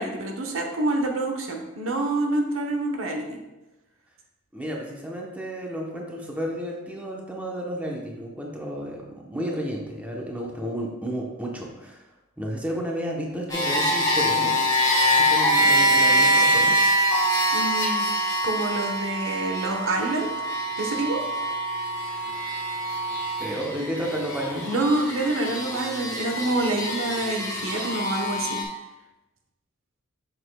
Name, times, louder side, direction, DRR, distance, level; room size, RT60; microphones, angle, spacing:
voice 1, 0.0-3.3 17.5-18.1 18.4-20.3 20.8-21.2 24.7-28.6, right 2 dB, 80° right, 3 dB, 0.9 m, -27 dB
voice 2, 4.5-12.1 12.4-14.6 15.2-16.8 23.4-24.7, equal, 5° right, -1 dB, 0.8 m, -32 dB
sound 1, 13.5-28.6, equal, 20° left, 1.5 m, -24 dB
7.2 x 6.5 x 2.3 m, 1.0 s
head